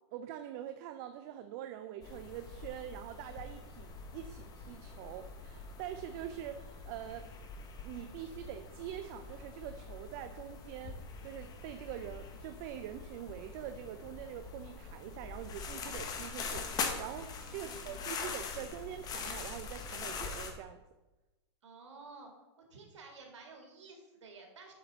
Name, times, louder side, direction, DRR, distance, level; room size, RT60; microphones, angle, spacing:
voice 1, 0.1-7.3 7.8-20.8, right 10 dB, 45° right, 9 dB, 0.5 m, -44 dB
sound 1, 2.0-20.5, left 5 dB, 25° left, 1.0 m, -43 dB
voice 2, 17.4-18.0 21.6-22.3 22.7-24.7, right 3 dB, 90° right, 2 dB, 2.0 m, -52 dB
7.8 x 6.1 x 4.0 m, 1.1 s
hypercardioid pair, 135°, 15 cm